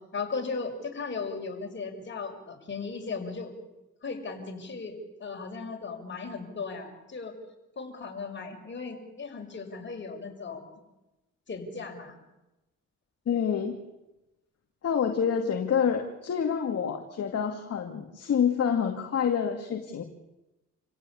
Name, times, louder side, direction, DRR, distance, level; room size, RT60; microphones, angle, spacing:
voice 1, 0.1-3.5 4.0-7.3 7.8-10.7 11.5-12.2, left 4 dB, 40° left, 3 dB, 6.4 m, -37 dB
voice 2, 13.3-13.8 14.8-20.0, left 7 dB, 55° left, 4 dB, 2.4 m, -27 dB
28.5 x 16.5 x 8.6 m, 0.99 s
cardioid pair, 90°, 30 cm